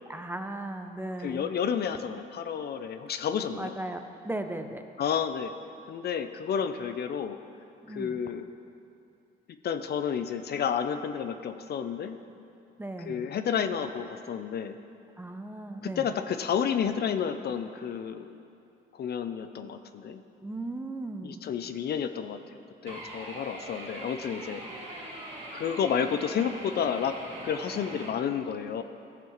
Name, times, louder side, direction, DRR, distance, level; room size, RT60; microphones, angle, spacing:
voice 1, 0.1-1.5 3.6-4.8 7.8-8.2 12.8-13.2 15.2-16.1 20.4-21.4, right 2 dB, 10° right, 6 dB, 0.6 m, -37 dB
voice 2, 1.2-3.7 5.0-5.5 5.9-7.4 7.9-8.4 9.6-12.2 13.1-14.8 15.8-18.3 18.9-20.2 21.2-25.0 25.5-27.2 27.4-28.8, left 7 dB, 55° left, 9 dB, 0.5 m, -31 dB
sound 1, 22.9-28.1, right 1 dB, 30° right, 2.1 m, -42 dB
15.0 x 6.9 x 3.1 m, 2.6 s
cardioid pair, 90°, 20 cm